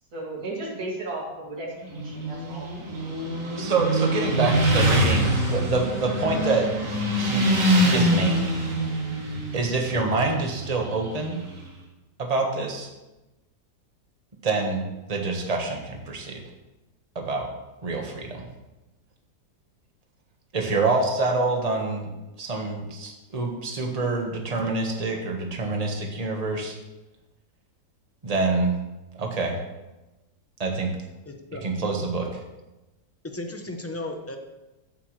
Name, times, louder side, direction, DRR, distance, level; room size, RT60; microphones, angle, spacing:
voice 1, 0.1-2.7, right 2 dB, 60° right, -3 dB, 2.8 m, -34 dB
Motorcycle, 1.8-11.6, equal, 90° right, 2.5 m, -25 dB
voice 2, 3.5-6.7 7.2-8.6 9.5-11.4 12.2-12.9 14.4-14.8 15.1-16.4 17.1-17.5 17.8-18.5 20.5-22.1 22.4-26.7 28.2-28.8 29.1-29.6 30.6-30.9 31.6-32.3, right 3 dB, 25° right, 2 dB, 1.3 m, -26 dB
voice 3, 4.4-5.0 31.2-31.6 33.2-34.4, left 2 dB, 20° left, 4 dB, 0.4 m, -35 dB
14.5 x 7.9 x 3.2 m, 1.0 s
omnidirectional pair, 1.8 m